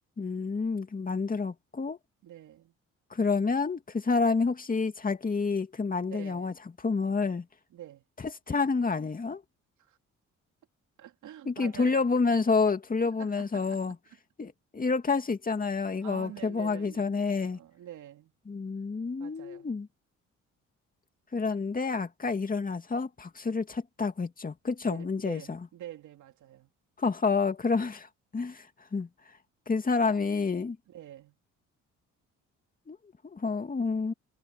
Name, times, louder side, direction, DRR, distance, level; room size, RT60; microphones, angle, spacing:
voice 1, 0.2-2.0 3.1-6.5 6.8-7.4 8.5-9.4 11.5-14.0 14.4-17.6 18.5-19.9 21.3-25.6 27.0-28.1 28.3-28.7 28.9-29.1 29.7-30.8 32.9-33.0 33.3-34.1, left 4 dB, 30° left, 2.4 m, -29 dB
voice 2, 2.2-2.7 6.0-6.6 7.7-8.0 9.8-10.0 11.0-12.0 13.2-13.8 16.0-17.2 17.5-18.3 19.2-19.7 24.8-26.7 30.9-31.4, right 12 dB, 75° right, 3.0 m, -46 dB
cardioid pair, 90°, 30 cm